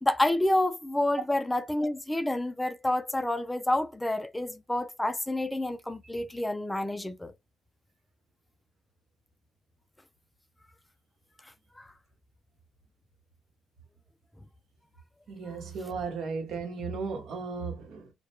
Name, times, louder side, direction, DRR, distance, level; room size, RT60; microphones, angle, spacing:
voice 1, 0.0-7.3 11.8-11.9, left 1 dB, 10° left, 0.3 m, -28 dB
voice 2, 15.3-18.1, right 4 dB, 70° right, 0.9 m, -35 dB
2.2 x 2.1 x 2.9 m
cardioid pair, 85°, 0 cm